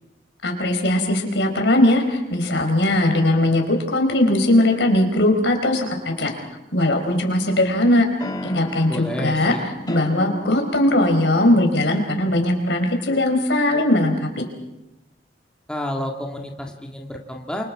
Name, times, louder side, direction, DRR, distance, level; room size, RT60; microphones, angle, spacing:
voice 1, 0.4-6.4 6.7-8.0 8.4-9.5 9.9-14.4, left 1 dB, 75° left, 4 dB, 4.7 m, -19 dB
sound 1, 6.7-7.5 8.2-11.8, left 1 dB, 25° left, 1.5 m, -35 dB
voice 2, 8.9-9.6 15.7-17.6, equal, 5° left, 1 dB, 1.9 m, -30 dB
28.5 x 24.5 x 4.8 m, 0.95 s
head